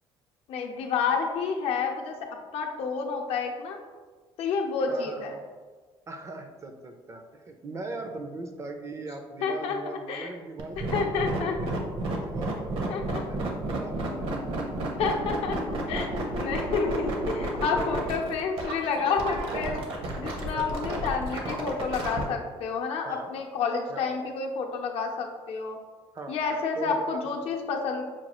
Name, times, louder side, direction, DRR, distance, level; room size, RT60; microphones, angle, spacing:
voice 1, 0.5-3.8 4.4-5.3 9.4-9.8 10.1-10.3 10.8-11.8 12.9-13.2 15.0-16.1 16.4-17.1 17.4-19.8 20.2-25.8 26.3-28.0, left 5 dB, 70° left, 2 dB, 0.6 m, -29 dB
voice 2, 4.9-5.4 6.1-11.8 12.1-14.3 16.5-17.2 17.5-17.9 20.5-20.9 23.0-23.3 23.9-24.1 26.1-27.3, right 2 dB, 30° right, 6 dB, 0.4 m, -40 dB
sound 1, 10.6-22.2, right 1 dB, 60° right, 0.8 m, -31 dB
5.7 x 2.3 x 2.9 m, 1.4 s
cardioid pair, 130°, 10 cm